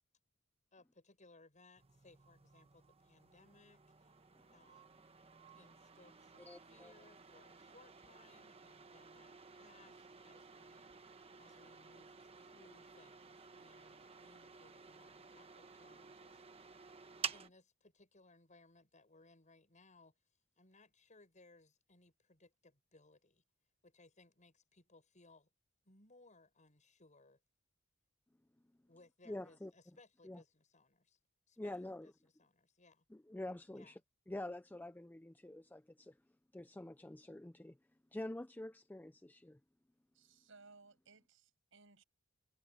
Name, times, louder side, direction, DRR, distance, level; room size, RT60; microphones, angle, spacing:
voice 1, 0.7-4.1 4.5-5.2 5.5-10.9 11.4-16.8 17.3-20.2 20.6-23.4 23.8-25.5 25.8-27.4 28.9-31.2 31.5-33.0 33.7-34.0, left 2 dB, 40° left, 7.7 m, -66 dB
sound 1, 1.8-17.5, right 6 dB, 30° right, 1.1 m, -52 dB
voice 2, 6.4-6.9 29.3-29.7 30.2-30.4 31.6-32.1 33.1-34.0 34.3-36.1 36.5-37.8 38.1-39.6, left 1 dB, 10° left, 0.4 m, -47 dB
voice 3, 40.1-42.0, right 3 dB, 70° right, 6.8 m, -62 dB
head